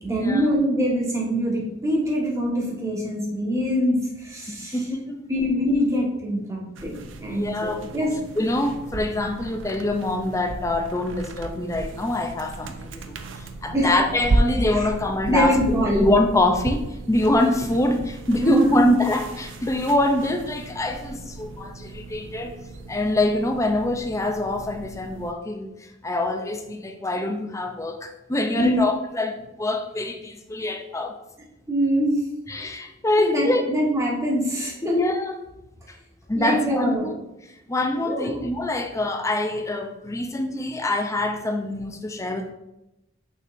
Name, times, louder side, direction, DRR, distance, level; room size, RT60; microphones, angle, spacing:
voice 1, 0.0-4.8 5.3-8.1 13.7-13.9 14.8-14.9 15.3-16.1 18.4-18.9 28.5-28.8 31.7-32.2 33.2-35.0 36.3-37.1 38.0-38.3, equal, 15° right, -3 dB, 1.4 m, -24 dB
voice 2, 4.5-5.2 7.3-7.9 8.4-22.6 22.9-25.7 26.0-31.2 32.5-33.6 34.8-35.4 36.3-37.1 37.7-42.5, left 1 dB, 15° left, 5 dB, 0.5 m, -25 dB
sound 1, 6.8-25.3, right 2 dB, 70° right, 0.6 m, -33 dB
6.5 x 5.9 x 2.6 m, 0.90 s
head